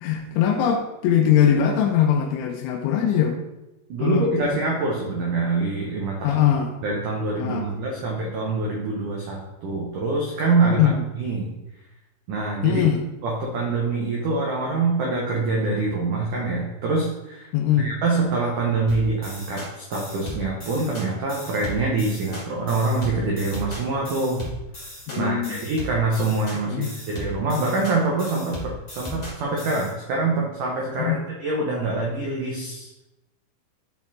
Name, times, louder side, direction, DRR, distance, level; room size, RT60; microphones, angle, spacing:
voice 1, 0.0-3.4 4.0-4.3 6.2-6.7 7.4-7.8 10.7-11.0 12.6-13.0 17.5-17.9 25.1-25.6 26.7-26.9 31.0-31.2, left 9 dB, 85° left, 2 dB, 3.2 m, -21 dB
voice 2, 3.9-6.3 6.8-10.8 11.2-11.5 12.3-12.8 13.2-17.5 17.8-24.5 25.2-32.9, right 3 dB, 85° right, -2 dB, 1.8 m, -25 dB
sound 1, 18.9-29.9, left 1 dB, 65° left, 0.4 m, -37 dB
12.5 x 4.4 x 4.2 m, 0.96 s
omnidirectional pair, 5.5 m